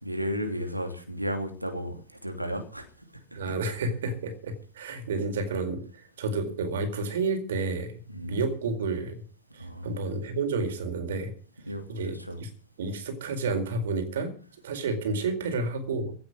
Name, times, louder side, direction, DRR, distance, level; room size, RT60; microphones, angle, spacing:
voice 1, 0.0-2.9 3.3-3.6 8.1-8.4 9.6-9.9 11.7-12.4, equal, 90° right, 3.0 m, -34 dB
voice 2, 3.3-5.8 6.2-8.0 8.3-9.2 9.5-11.3 11.9-12.5 12.8-14.3 14.6-16.1, right 3 dB, 60° right, 4.4 m, -30 dB
17.0 x 8.3 x 7.7 m
figure-of-eight pair, 90°, 0 cm